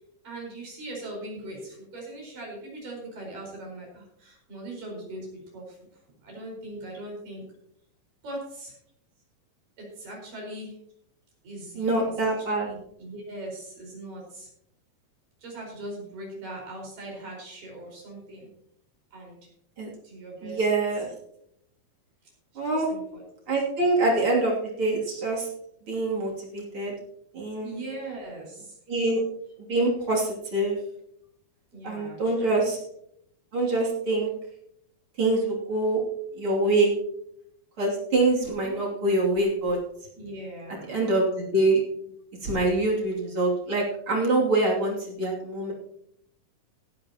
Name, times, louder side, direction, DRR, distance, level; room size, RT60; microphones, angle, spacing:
voice 1, 0.2-5.8 6.2-7.5 8.2-8.7 9.8-10.8 11.4-14.5 15.4-18.5 19.1-19.5 20.0-20.7 22.5-23.2 27.6-28.8 31.7-32.6 38.6-38.8 40.1-40.9, right 1 dB, 65° right, -1 dB, 6.5 m, -40 dB
voice 2, 11.7-12.7 19.8-19.9 20.4-21.1 22.5-22.9 23.5-25.5 25.9-26.9 27.3-27.7 28.9-29.2 29.6-30.8 31.8-32.8 33.5-34.3 35.2-36.0 36.4-36.9 37.8-39.8 40.7-41.8 42.4-45.7, right 2 dB, 40° right, -3 dB, 3.4 m, -25 dB
17.5 x 11.5 x 2.9 m, 0.73 s
omnidirectional pair, 4.0 m